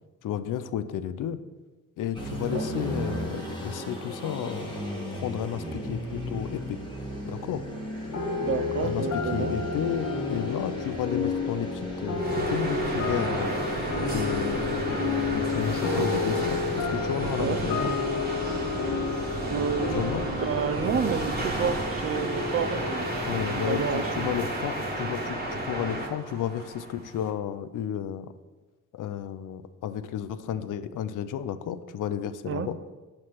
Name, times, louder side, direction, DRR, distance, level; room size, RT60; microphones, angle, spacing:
voice 1, 0.2-1.4 2.0-6.8 7.2-7.6 8.8-13.5 14.1-17.9 19.9-20.3 23.2-28.3 28.9-32.8, left 9 dB, 75° left, 12 dB, 0.5 m, -32 dB
sound 1, 2.1-17.8, equal, 15° left, 1.3 m, -36 dB
sound 2, 8.1-24.9, left 4 dB, 60° left, 1.3 m, -32 dB
voice 2, 8.4-9.5 17.4-17.6 19.5-20.1 20.4-24.3 32.5-32.7, right 7 dB, 45° right, 11 dB, 0.5 m, -30 dB
sound 3, 12.2-27.3, right 1 dB, 30° right, 1.4 m, -32 dB
7.4 x 3.2 x 5.8 m, 1.2 s
cardioid pair, 95°, 32 cm